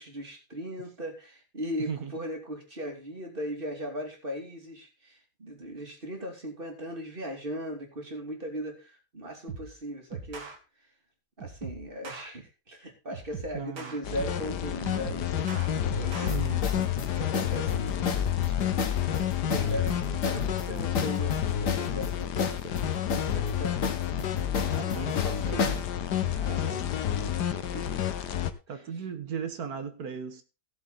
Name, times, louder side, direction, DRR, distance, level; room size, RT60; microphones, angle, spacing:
voice 1, 0.0-10.5 11.4-16.4 17.2-18.6 19.1-23.8 24.6-25.1 26.4-26.8 27.6-28.1, equal, 30° right, 3.0 m, -38 dB
sound 1, 9.5-9.8 10.1-10.6 11.4-12.3 13.1-14.5 14.8-16.3, right 5 dB, 80° right, 2.6 m, -41 dB
voice 2, 13.5-14.0 16.1-17.0 19.5-19.8 24.9-25.8 26.2-26.9 28.7-30.4, right 7 dB, 65° right, 1.8 m, -38 dB
sound 2, 14.0-28.5, left 10 dB, 80° left, 1.6 m, -29 dB
sound 3, 16.3-25.9, left 5 dB, 55° left, 1.5 m, -33 dB
16.0 x 7.2 x 4.0 m
omnidirectional pair, 1.8 m